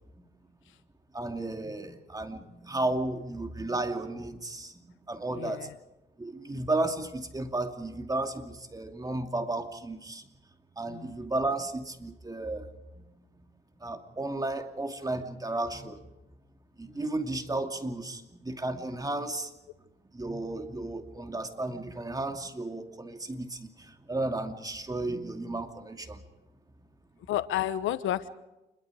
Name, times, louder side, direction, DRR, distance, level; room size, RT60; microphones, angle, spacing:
voice 1, 1.1-4.8 5.1-5.7 6.2-10.2 10.8-12.7 13.8-16.0 16.8-19.5 20.1-23.7 24.1-26.2, right 2 dB, 20° right, 6 dB, 2.6 m, -33 dB
voice 2, 5.3-5.7 10.9-11.1 16.9-17.0 27.3-28.3, left 12 dB, 85° left, 13 dB, 1.1 m, -31 dB
28.0 x 22.0 x 4.9 m, 0.98 s
cardioid pair, 90°, 20 cm